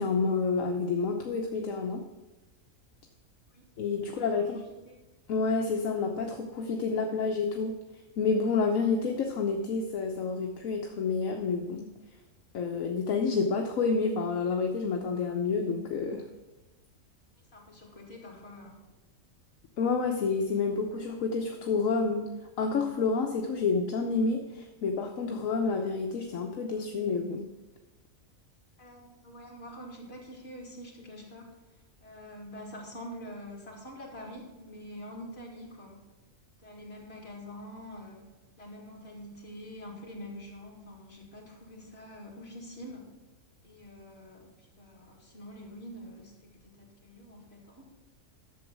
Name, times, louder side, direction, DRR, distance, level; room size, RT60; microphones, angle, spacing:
voice 1, 0.0-2.1 3.8-4.6 5.3-7.7 8.2-11.9 12.5-16.2 19.8-22.3 22.6-27.5, left 4 dB, 75° left, 3 dB, 1.3 m, -29 dB
voice 2, 4.1-4.5 4.9-5.0 17.5-18.8 28.8-31.5 32.0-36.0 36.6-38.2 38.6-43.1 43.6-47.9, equal, 45° left, -2 dB, 2.9 m, -46 dB
12.0 x 7.2 x 6.1 m, 1.1 s
omnidirectional pair, 1.4 m